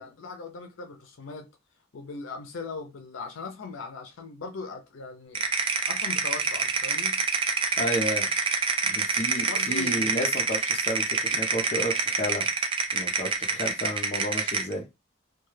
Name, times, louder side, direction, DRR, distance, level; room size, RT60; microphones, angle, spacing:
voice 1, 0.0-1.5 1.9-5.5 5.9-7.2 9.4-10.2, left 4 dB, 85° left, 0.5 m, -39 dB
sound 1, 5.3-14.7, right 4 dB, 25° right, 0.3 m, -26 dB
voice 2, 7.8-8.3 8.8-12.5 12.9-14.8, equal, 35° left, 0.6 m, -31 dB
2.3 x 2.2 x 3.1 m
head